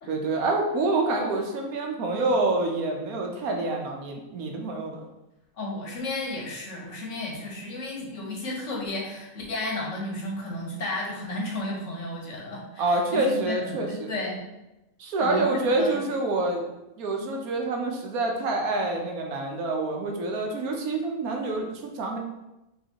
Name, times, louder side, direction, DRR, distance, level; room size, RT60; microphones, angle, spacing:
voice 1, 0.1-5.0 12.8-14.1 15.0-16.7 17.0-22.2, right 2 dB, 80° right, 2 dB, 1.2 m, -27 dB
voice 2, 5.6-14.4 15.2-16.0, left 2 dB, 60° left, -2 dB, 1.3 m, -33 dB
5.5 x 3.2 x 2.9 m, 0.94 s
omnidirectional pair, 1.5 m